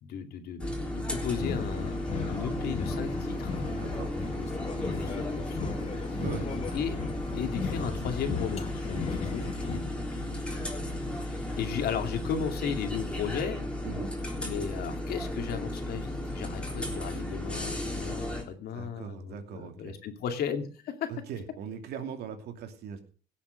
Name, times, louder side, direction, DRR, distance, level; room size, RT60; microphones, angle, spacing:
voice 1, 0.0-3.6 5.0-6.2 6.7-7.0 7.3-10.6 11.1-13.6 14.4-21.1, left 7 dB, 65° left, 6 dB, 2.5 m, -35 dB
sound 1, 0.6-18.4, left 1 dB, 5° left, 3.6 m, -35 dB
sound 2, 1.1-9.8, left 4 dB, 40° left, 2.0 m, -36 dB
voice 2, 3.7-4.1 6.2-6.5 13.8-14.1 18.7-19.9 21.1-23.0, right 7 dB, 70° right, 6 dB, 2.7 m, -40 dB
17.0 x 7.3 x 6.4 m, 0.41 s
cardioid pair, 110°, 17 cm